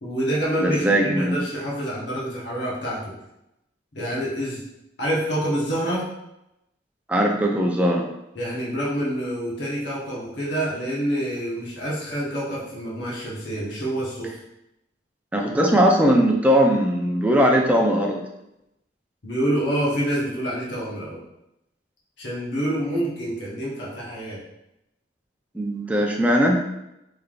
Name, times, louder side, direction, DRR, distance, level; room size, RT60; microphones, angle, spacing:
voice 1, 0.0-3.1 3.9-4.6 5.0-6.1 8.3-14.3 19.2-21.2 22.2-24.4, right 1 dB, 70° left, -5 dB, 1.0 m, -27 dB
voice 2, 0.6-1.4 7.1-8.1 15.3-18.2 25.5-26.6, equal, 10° right, 0 dB, 0.4 m, -19 dB
3.7 x 3.3 x 2.4 m, 0.85 s
head